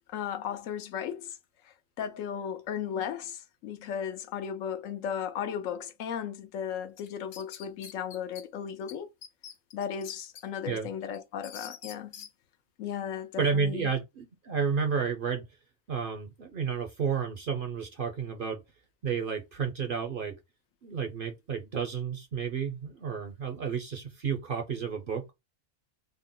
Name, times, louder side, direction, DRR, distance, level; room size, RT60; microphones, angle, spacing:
voice 1, 0.1-1.4 1.6-9.1 9.7-12.3 12.8-13.9, left 8 dB, 80° left, 1.0 m, -36 dB
sound 1, 7.0-8.4 8.9-9.0 9.2-10.4 10.8-12.3, left 8 dB, 60° left, 0.7 m, -46 dB
voice 2, 13.4-15.4 15.9-18.6 19.0-20.4 20.8-25.3, right 6 dB, 55° right, 0.6 m, -31 dB
3.5 x 2.1 x 3.7 m
omnidirectional pair, 1.4 m